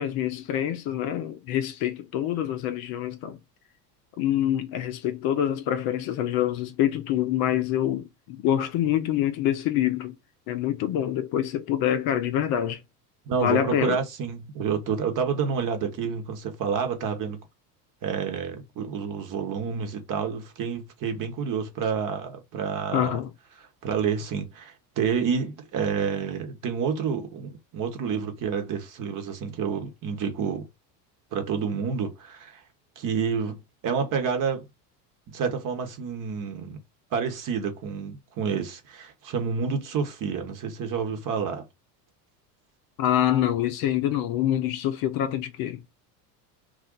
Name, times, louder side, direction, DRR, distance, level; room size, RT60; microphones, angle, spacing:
voice 1, 0.0-3.4 4.2-10.1 10.5-12.8 13.4-14.0 22.9-23.3 43.0-45.8, left 11 dB, 45° left, 0.6 m, -26 dB
voice 2, 13.3-17.4 18.0-23.2 23.6-30.6 31.3-32.6 33.0-33.6 33.8-34.6 35.3-36.8 37.1-41.7, right 6 dB, 40° right, 1.0 m, -29 dB
2.5 x 2.2 x 3.7 m
hypercardioid pair, 95°, 49 cm